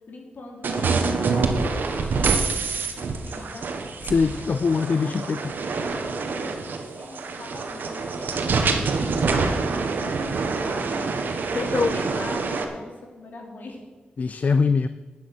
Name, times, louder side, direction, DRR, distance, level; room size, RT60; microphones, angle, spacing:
voice 1, 0.1-3.7 4.9-11.2 11.7-13.8, left 2 dB, 65° left, 1 dB, 3.1 m, -42 dB
sound 1, 0.6-12.6, right 4 dB, 75° right, 1.4 m, -26 dB
voice 2, 4.0-5.5 11.5-12.0 14.2-14.9, left 5 dB, 50° left, 12 dB, 0.4 m, -22 dB
12.5 x 9.5 x 6.1 m, 1.4 s
wide cardioid pair, 95°, 3 cm